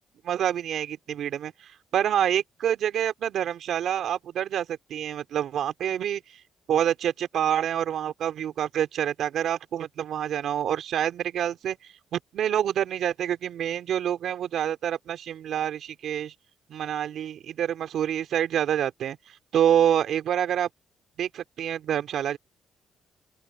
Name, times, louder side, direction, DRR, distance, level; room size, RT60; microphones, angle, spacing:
voice 1, 0.2-6.2 6.7-11.8 12.1-16.3 16.7-19.2 19.5-20.7 21.2-22.4, right 10 dB, 70° right, 3.0 m, -27 dB
open air
cardioid pair, 90°, 0 cm